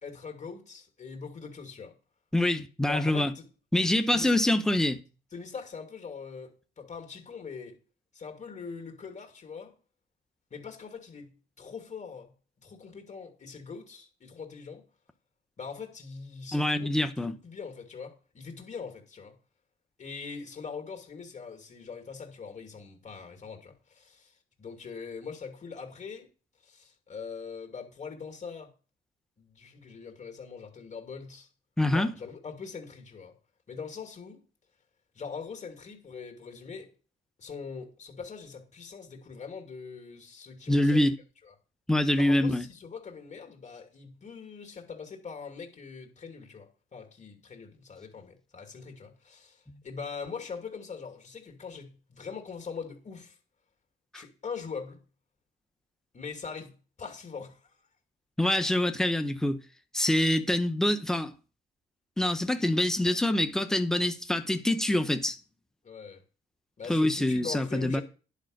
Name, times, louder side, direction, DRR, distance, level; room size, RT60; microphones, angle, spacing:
voice 1, 0.0-1.9 2.9-3.5 4.1-4.3 5.3-7.8 8.1-9.7 10.5-11.3 11.6-12.3 12.6-14.8 15.6-19.3 20.0-24.3 24.6-26.3 26.6-28.7 29.4-31.5 31.9-33.3 33.7-34.4 35.1-36.9 37.4-41.1 41.5-41.6 42.1-53.4 54.1-55.0 56.1-57.8 58.4-58.6 65.8-66.2 66.8-68.0, left 5 dB, 35° left, 2.6 m, -42 dB
voice 2, 2.3-3.3 3.7-5.0 16.5-17.4 31.8-32.1 40.7-41.1 41.9-42.7 54.1-54.2 58.4-59.6 59.9-61.3 62.2-65.4 66.9-68.0, left 1 dB, 5° left, 1.0 m, -25 dB
10.5 x 5.1 x 6.6 m
cardioid pair, 90°, 20 cm